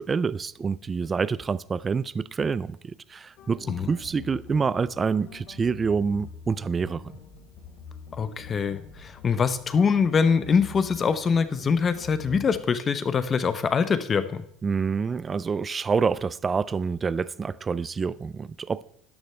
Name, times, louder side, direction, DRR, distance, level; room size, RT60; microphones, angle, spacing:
voice 1, 0.0-7.0 14.6-18.8, right 5 dB, 20° right, 0.3 m, -27 dB
sound 1, 3.4-12.6, left 6 dB, 55° left, 2.6 m, -45 dB
voice 2, 8.2-14.4, left 6 dB, 25° left, 0.7 m, -24 dB
13.5 x 10.5 x 3.2 m
supercardioid pair, 130°, 0 cm